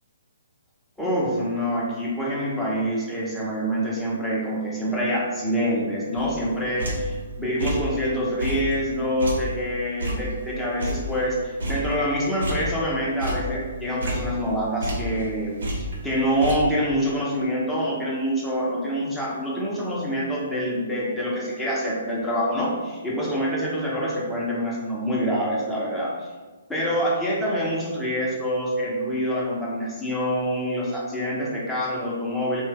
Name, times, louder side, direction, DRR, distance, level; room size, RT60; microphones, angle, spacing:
voice 1, 1.0-26.3 26.7-32.6, equal, 5° left, -7 dB, 0.8 m, -26 dB
sound 1, 6.1-7.2 7.6-8.0 8.4-11.3 11.6-12.9 13.2-15.3 15.6-16.6, equal, 70° right, 0.7 m, -30 dB
2.7 x 2.2 x 3.3 m, 1.3 s
figure-of-eight pair, 130°, 0 cm